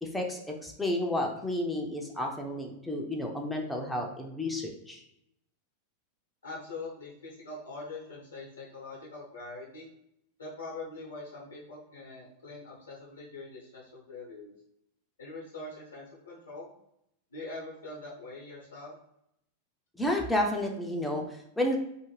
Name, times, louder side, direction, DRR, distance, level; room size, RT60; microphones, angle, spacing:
voice 1, 0.0-5.0 20.0-21.8, left 1 dB, 5° left, 0 dB, 0.4 m, -31 dB
voice 2, 6.4-9.9 10.4-14.5 15.2-16.7 17.3-19.0, left 3 dB, 75° left, -4 dB, 0.6 m, -43 dB
2.4 x 2.1 x 3.1 m, 0.79 s
figure-of-eight pair, 90°, 0 cm